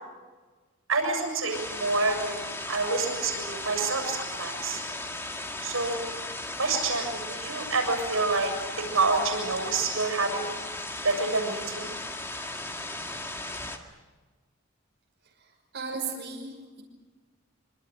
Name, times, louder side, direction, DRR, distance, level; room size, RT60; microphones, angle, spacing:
voice 1, 0.9-4.8 5.6-6.0 6.6-8.5 8.9-10.4 11.0-11.9, right 3 dB, 90° right, 4 dB, 7.3 m, -27 dB
sound 1, 1.5-13.8, left 2 dB, 10° left, 2.0 m, -36 dB
voice 2, 15.2-16.8, right 4 dB, 55° right, -2 dB, 5.9 m, -37 dB
26.5 x 25.0 x 6.8 m, 1.3 s
head